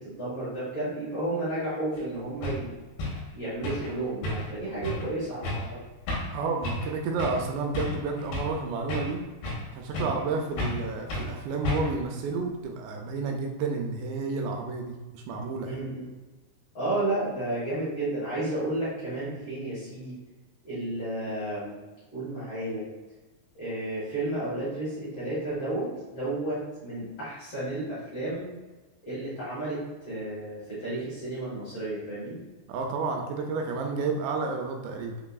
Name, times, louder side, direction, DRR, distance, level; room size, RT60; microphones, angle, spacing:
voice 1, 0.0-2.7 3.3-5.8 10.0-10.1 15.6-16.1 16.7-20.2 20.6-21.8 22.1-22.8 23.5-28.5 29.0-29.8 30.1-32.4, right 1 dB, 55° left, -12 dB, 1.6 m, -32 dB
sound 1, 2.0-2.1 2.4-2.6 3.0-3.2 3.6-3.9 4.2-4.6 4.8-5.1 5.4-5.7 6.1-6.4 6.6-6.9 7.2-7.4 7.7-8.6 8.9-9.7 9.9-10.3 10.6-10.8 11.1-11.3 11.7-12.0, left 1 dB, 70° left, 2.9 m, -32 dB
voice 2, 6.3-9.2 9.7-15.8 32.7-35.2, right 4 dB, 85° right, 2 dB, 2.6 m, -31 dB
6.6 x 2.6 x 2.3 m, 1.2 s
omnidirectional pair, 5.0 m